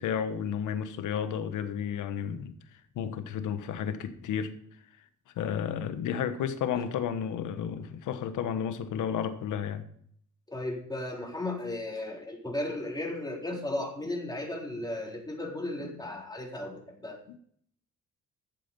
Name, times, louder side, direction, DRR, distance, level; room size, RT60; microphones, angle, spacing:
voice 1, 0.0-2.5 2.9-4.5 5.3-9.8, left 8 dB, 80° left, 1.4 m, -32 dB
voice 2, 10.5-17.2, left 1 dB, 15° left, 4.1 m, -35 dB
13.0 x 8.0 x 5.5 m
cardioid pair, 90°, 30 cm